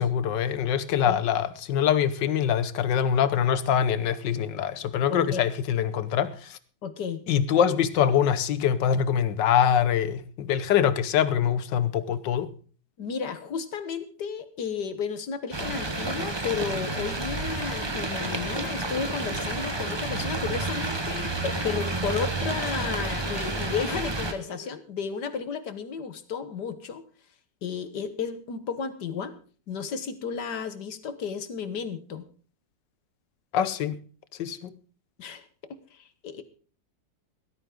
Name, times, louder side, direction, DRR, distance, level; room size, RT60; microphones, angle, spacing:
voice 1, 0.0-6.6 7.3-12.5 33.5-34.0 34.4-34.7, left 9 dB, 90° left, 1.6 m, -24 dB
voice 2, 5.1-5.4 6.8-7.2 13.0-27.1 27.6-29.4 29.7-32.2 35.2-36.4, left 6 dB, 70° left, 1.9 m, -33 dB
sound 1, 15.5-24.3, right 2 dB, 15° right, 1.1 m, -30 dB
Laughter, 20.8-22.2 24.0-25.2, equal, 90° right, 7.1 m, -48 dB
17.0 x 13.0 x 3.8 m
omnidirectional pair, 1.9 m